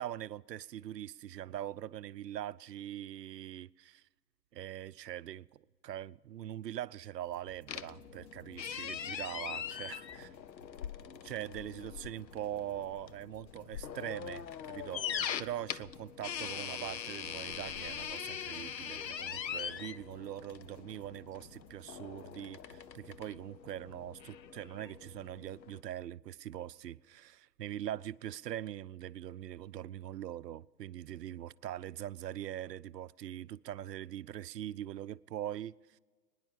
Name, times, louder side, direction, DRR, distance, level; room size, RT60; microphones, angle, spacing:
voice 1, 0.0-4.0 4.5-10.1 11.2-36.0, right 12 dB, 75° right, 0.6 m, -42 dB
sound 1, 7.3-23.3, right 1 dB, 30° left, 2.1 m, -63 dB
sound 2, 7.7-25.8, left 8 dB, 85° left, 0.8 m, -42 dB
22.0 x 10.5 x 5.5 m
hypercardioid pair, 135°, 50 cm